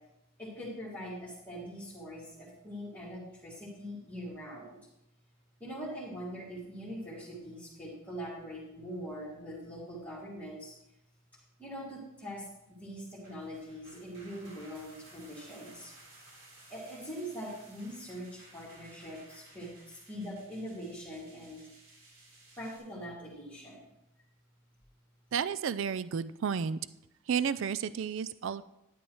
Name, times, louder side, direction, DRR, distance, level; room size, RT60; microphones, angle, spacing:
voice 1, 0.4-4.8 5.6-10.7 11.6-15.9 16.7-21.7 22.6-23.8, equal, 10° left, -9 dB, 2.3 m, -42 dB
sound 1, 13.1-22.8, right 2 dB, 85° right, 4.2 m, -57 dB
voice 2, 25.3-26.8 27.3-28.6, right 7 dB, 60° right, 16 dB, 0.4 m, -32 dB
12.0 x 10.0 x 3.1 m, 0.86 s
head